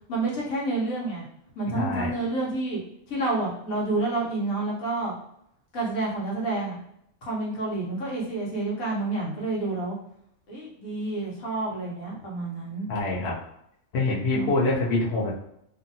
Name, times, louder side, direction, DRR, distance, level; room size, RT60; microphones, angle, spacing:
voice 1, 0.1-1.2 1.6-2.8 3.1-5.1 5.7-6.8 7.2-10.0 10.5-12.9 14.3-14.5, right 2 dB, 75° left, -4 dB, 1.3 m, -29 dB
voice 2, 1.7-2.1 12.9-13.3 13.9-15.3, left 2 dB, 60° left, -4 dB, 0.8 m, -25 dB
2.7 x 2.5 x 2.6 m, 0.76 s
omnidirectional pair, 1.5 m